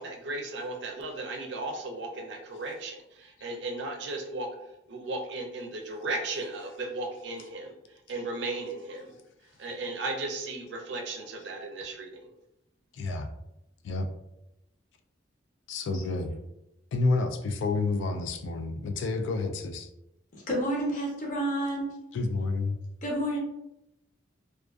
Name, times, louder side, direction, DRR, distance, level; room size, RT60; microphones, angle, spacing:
voice 1, 0.0-4.5 4.9-7.7 8.1-9.2 9.6-12.2, right 2 dB, 70° right, 3 dB, 0.4 m, -35 dB
voice 2, 12.9-13.3 13.8-14.1 15.7-16.4 16.9-19.9 22.1-22.8, left 3 dB, 85° left, 6 dB, 0.3 m, -29 dB
voice 3, 20.3-21.9 23.0-23.4, right 1 dB, 45° left, -2 dB, 0.6 m, -30 dB
2.4 x 2.3 x 2.3 m, 0.87 s
head